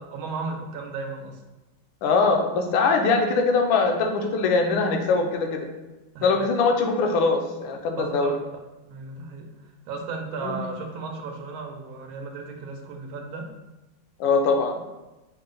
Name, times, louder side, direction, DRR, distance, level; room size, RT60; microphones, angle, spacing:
voice 1, 0.1-1.4 6.1-6.4 8.0-8.4 8.8-9.5 9.9-13.5, right 4 dB, 85° right, 3 dB, 1.4 m, -35 dB
voice 2, 2.0-5.6 6.2-8.3 10.4-10.6 14.2-14.7, left 4 dB, 80° left, 3 dB, 1.3 m, -22 dB
5.5 x 2.1 x 3.7 m, 1.1 s
omnidirectional pair, 2.2 m